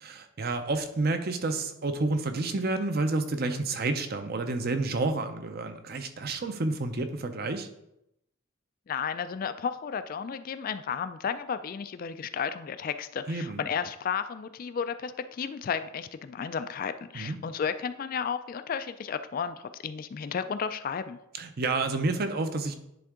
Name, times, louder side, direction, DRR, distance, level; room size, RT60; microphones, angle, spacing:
voice 1, 0.0-7.7 13.3-13.6 17.1-17.4 21.4-22.7, right 3 dB, 50° right, 8 dB, 0.7 m, -29 dB
voice 2, 8.9-21.2, left 6 dB, 45° left, 11 dB, 0.3 m, -33 dB
10.5 x 3.5 x 3.7 m, 0.82 s
head